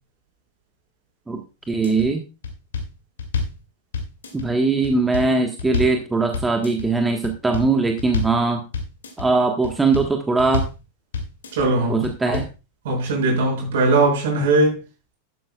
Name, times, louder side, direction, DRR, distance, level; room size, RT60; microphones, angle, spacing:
sound 1, 1.6-2.1 2.4-3.6 3.9-4.5 4.8-6.0 6.3-6.9 7.2-7.7 8.0-8.4 8.7-9.3 9.6-10.1 10.4-10.8 11.1-11.7 12.0-12.6, left 4 dB, 65° left, 2.5 m, -28 dB
voice 1, 1.7-2.2 4.3-8.6 9.2-10.6 11.9-12.5, right 3 dB, 10° right, 1.4 m, -20 dB
voice 2, 11.5-12.4 12.8-14.8, right 2 dB, 55° right, 6.5 m, -20 dB
12.0 x 11.5 x 2.4 m
figure-of-eight pair, 90°, 0 cm